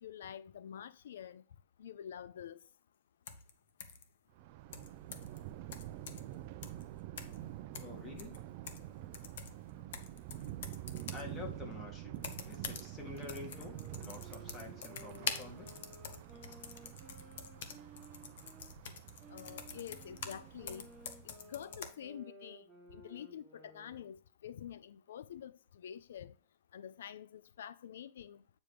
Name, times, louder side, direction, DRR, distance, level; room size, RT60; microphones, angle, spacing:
voice 1, 0.0-1.4 1.8-2.6 19.3-20.9 21.2-26.3 26.7-28.4, left 9 dB, 80° left, 0.3 m, -47 dB
sound 1, 3.3-3.5 3.8-4.0 4.7-5.4 5.7-6.3 6.6-6.8 7.2-7.4 7.7-8.9 9.1-11.3 12.2-12.9 13.2-20.4 20.7-21.9, left 6 dB, 65° left, 1.0 m, -46 dB
Thunder, 4.3-21.7, right 14 dB, 40° right, 0.4 m, -48 dB
voice 2, 7.8-8.4 11.1-15.7, left 4 dB, 20° left, 1.6 m, -48 dB
sound 2, 13.3-18.7 19.2-24.1, right 1 dB, ahead, 1.5 m, -57 dB
8.8 x 5.1 x 3.1 m
supercardioid pair, 165°, 0 cm